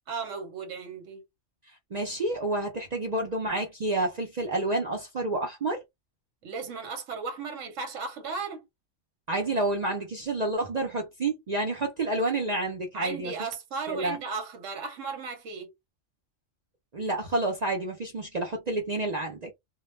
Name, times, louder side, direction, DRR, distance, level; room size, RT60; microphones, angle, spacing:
voice 1, 0.1-1.2 6.4-8.6 12.9-15.7, right 5 dB, 75° right, 1.1 m, -35 dB
voice 2, 1.9-5.8 9.3-13.3 13.9-14.2 16.9-19.5, right 2 dB, 45° right, 0.5 m, -29 dB
2.3 x 2.1 x 3.1 m
omnidirectional pair, 1.3 m